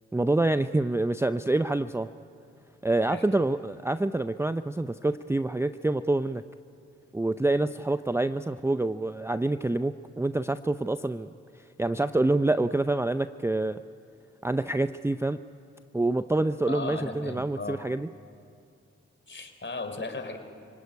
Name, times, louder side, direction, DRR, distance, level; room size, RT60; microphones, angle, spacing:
voice 1, 0.1-2.1 2.8-6.4 7.1-11.3 11.8-13.8 14.4-15.4 15.9-18.1, right 2 dB, 10° right, 11 dB, 0.5 m, -26 dB
voice 2, 16.7-17.8 19.3-20.4, left 3 dB, 35° left, 6 dB, 3.4 m, -36 dB
26.0 x 18.0 x 9.6 m, 2.4 s
supercardioid pair, 45°, 31 cm